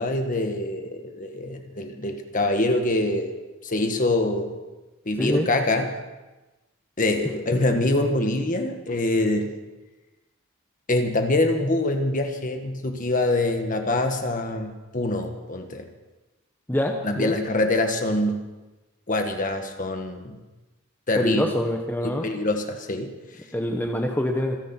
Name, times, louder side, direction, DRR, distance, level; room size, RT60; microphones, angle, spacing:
voice 1, 0.0-3.3 3.6-4.6 5.0-5.9 7.0-9.5 10.9-15.9 17.0-18.4 19.1-20.4 21.1-21.4 22.0-23.1, left 2 dB, 40° left, 5 dB, 1.7 m, -24 dB
voice 2, 16.7-17.3 21.2-22.3 23.5-24.6, left 1 dB, 10° left, 2 dB, 1.1 m, -25 dB
27.0 x 11.0 x 4.5 m, 1.1 s
head